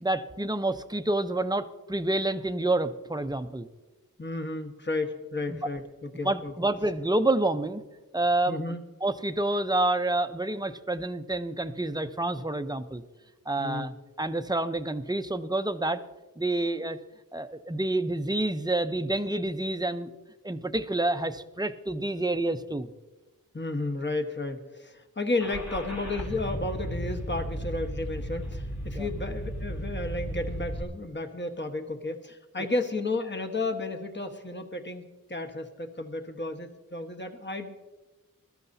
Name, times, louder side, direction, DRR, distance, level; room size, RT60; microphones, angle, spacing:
voice 1, 0.0-3.7 5.5-5.6 6.2-7.8 8.1-8.6 9.0-13.0 13.5-13.9 14.2-16.0 16.4-17.0 17.3-20.1 20.4-22.9 29.0-29.1, right 2 dB, 10° right, 9 dB, 0.7 m, -28 dB
voice 2, 4.2-6.5 8.5-8.8 13.6-13.9 23.5-35.0 35.3-37.7, left 2 dB, 30° left, 5 dB, 1.4 m, -32 dB
Car / Engine starting, 25.4-30.8, equal, 55° left, 2.8 m, -35 dB
21.0 x 13.0 x 2.8 m, 1.2 s
wide cardioid pair, 45°, 34 cm